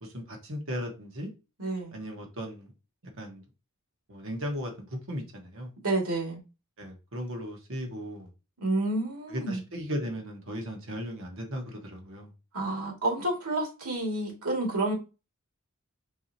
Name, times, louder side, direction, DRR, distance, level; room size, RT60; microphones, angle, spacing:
voice 1, 0.0-1.3 1.9-2.7 3.2-3.4 4.1-5.7 6.8-8.3 9.3-12.3, equal, 65° right, 1.3 m, -36 dB
voice 2, 1.6-2.0 5.8-6.4 8.6-9.6 12.5-14.9, right 2 dB, 80° right, 2.3 m, -29 dB
4.8 x 4.0 x 2.8 m
head